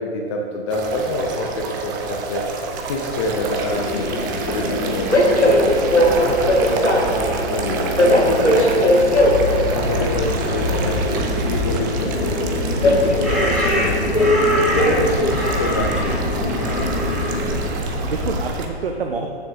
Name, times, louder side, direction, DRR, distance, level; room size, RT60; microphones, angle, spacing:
voice 1, 0.0-9.2 9.6-17.1, left 2 dB, 25° left, 1 dB, 0.6 m, -27 dB
sound 1, 0.7-18.7, right 3 dB, 20° right, 0.5 m, -29 dB
Train, 3.7-17.7, left 1 dB, 85° left, 1.4 m, -20 dB
sound 2, 9.1-18.4, left 1 dB, ahead, 1.6 m, -24 dB
voice 2, 9.8-10.2 18.0-19.3, right 5 dB, 55° right, 3 dB, 0.7 m, -28 dB
13.5 x 6.9 x 2.7 m, 2.2 s
figure-of-eight pair, 120°, 33 cm